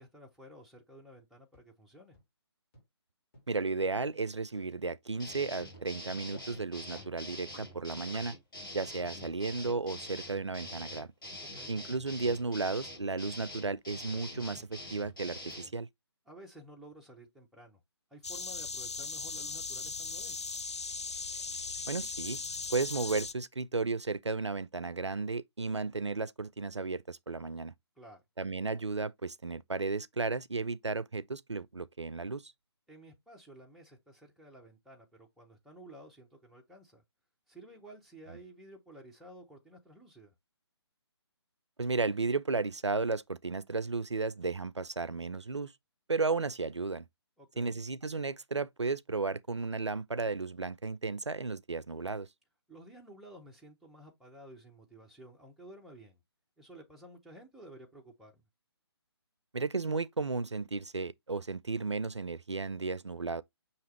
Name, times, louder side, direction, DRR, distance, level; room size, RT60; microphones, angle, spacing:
voice 1, 0.0-2.2 11.4-11.7 16.3-17.8 18.1-20.4 28.0-28.2 32.9-37.0 37.5-40.3 47.4-47.8 52.7-56.2 56.6-58.4, right 1 dB, ahead, 0.5 m, -53 dB
sound 1, 1.5-1.6 2.1-2.2 2.7-2.8 3.3-3.4 3.9-4.0 4.5-4.6 5.1-5.2 5.7-5.8 6.3-6.4 6.9-7.0 7.5-7.6 8.1-8.2, left 2 dB, 25° left, 2.6 m, -54 dB
voice 2, 3.5-8.3 8.7-11.1 11.7-15.9 21.9-22.4 22.7-27.7 28.4-32.5 41.8-45.7 46.1-47.1 47.6-52.3 59.5-63.4, right 3 dB, 90° right, 0.4 m, -34 dB
sound 2, 5.2-15.7, left 1 dB, 50° left, 2.0 m, -45 dB
sound 3, 18.2-23.3, left 4 dB, 80° left, 0.4 m, -38 dB
5.8 x 2.9 x 3.0 m
figure-of-eight pair, 140°, 14 cm